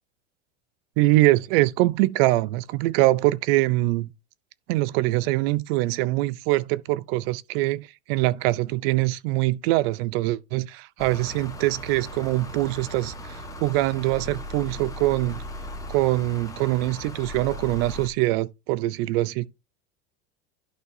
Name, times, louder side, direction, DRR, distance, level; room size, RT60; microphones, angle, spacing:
voice 1, 1.0-4.1 4.7-15.4 15.9-19.5, right 18 dB, 60° right, 0.6 m, -23 dB
sound 1, 11.0-18.1, left 1 dB, 10° left, 1.4 m, -38 dB
11.0 x 5.7 x 2.7 m
supercardioid pair, 120°, 33 cm